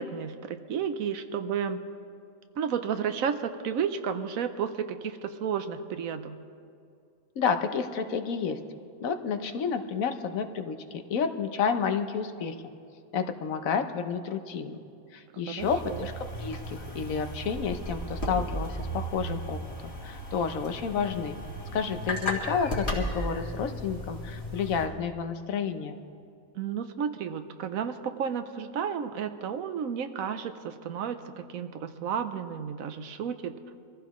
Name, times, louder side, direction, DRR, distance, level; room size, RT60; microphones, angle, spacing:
voice 1, 0.0-1.8 2.6-6.4 15.5-16.1 26.5-33.6, right 7 dB, 80° right, 9 dB, 1.2 m, -32 dB
voice 2, 7.4-8.6 9.0-12.5 13.1-14.8 15.1-16.1 16.4-21.4 21.7-26.0, left 6 dB, 80° left, 8 dB, 1.3 m, -30 dB
sound 1, 15.6-24.9, equal, 50° left, 2.3 m, -35 dB
23.5 x 15.0 x 3.1 m, 2.4 s
omnidirectional pair, 1.4 m